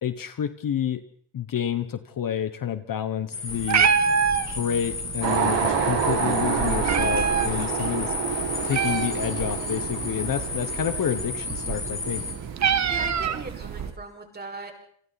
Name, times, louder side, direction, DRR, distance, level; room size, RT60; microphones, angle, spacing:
voice 1, 0.0-1.0 1.3-3.9 4.5-8.1 8.6-12.3, left 9 dB, 45° left, 10 dB, 1.4 m, -29 dB
sound 1, 3.3-12.3, left 4 dB, 25° left, 4.7 m, -33 dB
Meow, 3.5-13.9, right 6 dB, 35° right, 1.4 m, -28 dB
sound 2, 5.2-13.9, right 7 dB, 65° right, 5.5 m, -29 dB
voice 2, 12.6-14.7, right 3 dB, 20° right, 3 dB, 5.9 m, -39 dB
29.5 x 27.0 x 4.3 m, 0.63 s
cardioid pair, 160°, 47 cm